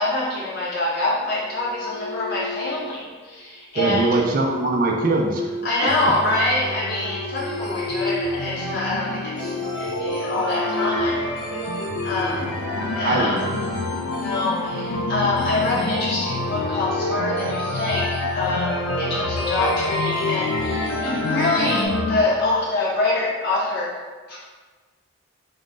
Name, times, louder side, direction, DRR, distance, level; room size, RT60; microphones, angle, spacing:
voice 1, 0.0-4.1 5.6-11.2 12.0-12.5 12.9-13.4 14.1-24.0 24.3-24.4, left 2 dB, 45° left, -8 dB, 1.2 m, -25 dB
reinsamba Nightingale song sadcryembarassed-rwrk, 1.5-3.0 4.0-6.1 6.6-8.5 8.8-9.0 9.5-11.9, left 2 dB, 25° left, 0.5 m, -32 dB
voice 2, 3.7-5.6 6.0-6.1 12.3-13.5, right 3 dB, 40° right, 0 dB, 0.3 m, -23 dB
sound 1, 5.9-21.9, equal, ahead, 1.1 m, -34 dB
sound 2, 8.2-22.2, left 2 dB, 85° left, 0.4 m, -27 dB
3.7 x 2.6 x 3.6 m, 1.4 s
head